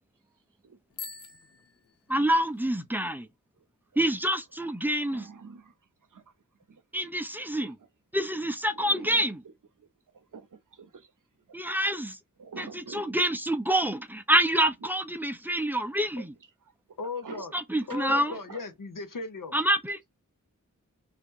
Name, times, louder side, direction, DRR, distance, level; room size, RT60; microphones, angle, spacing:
Bicycle bell, 0.9-2.6, left 5 dB, 50° left, 0.4 m, -45 dB
voice 1, 2.1-3.3 4.0-5.3 6.9-7.8 8.1-9.4 11.5-12.2 12.6-16.3 17.5-18.3 19.5-20.0, right 1 dB, 5° right, 0.5 m, -27 dB
voice 2, 4.8-5.7 6.1-6.3 6.7-6.8 7.6-7.9 8.7-9.9 10.1-11.1 11.5-11.6 12.4-13.2 14.8-14.9 17.2-18.6, right 5 dB, 75° right, 0.6 m, -46 dB
voice 3, 17.0-17.5 17.9-19.6, left 4 dB, 80° left, 0.8 m, -37 dB
2.8 x 2.5 x 3.6 m
wide cardioid pair, 50°, 32 cm